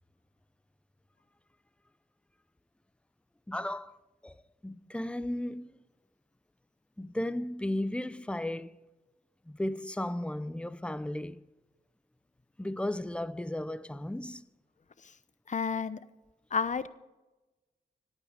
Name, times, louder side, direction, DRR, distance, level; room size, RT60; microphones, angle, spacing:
voice 1, 3.5-4.0 4.2-5.7 7.0-8.7 9.5-11.4 12.6-14.4, left 1 dB, 5° left, 0.7 m, -35 dB
voice 2, 15.5-16.0 16.5-16.9, left 5 dB, 45° left, 0.8 m, -31 dB
26.0 x 8.9 x 5.2 m
cardioid pair, 75°, 17 cm